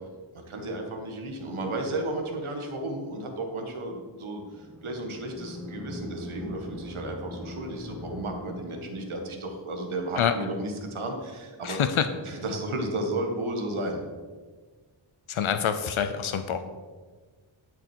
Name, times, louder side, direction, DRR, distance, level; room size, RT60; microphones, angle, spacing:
voice 1, 0.3-11.8 12.2-14.0, right 1 dB, 85° right, 3 dB, 1.7 m, -33 dB
sound 1, 4.5-9.4, left 1 dB, ahead, 1.7 m, -40 dB
voice 2, 11.6-12.0 15.3-16.6, left 8 dB, 80° left, 9 dB, 0.7 m, -26 dB
12.5 x 6.4 x 4.5 m, 1.4 s
wide cardioid pair, 95°, 48 cm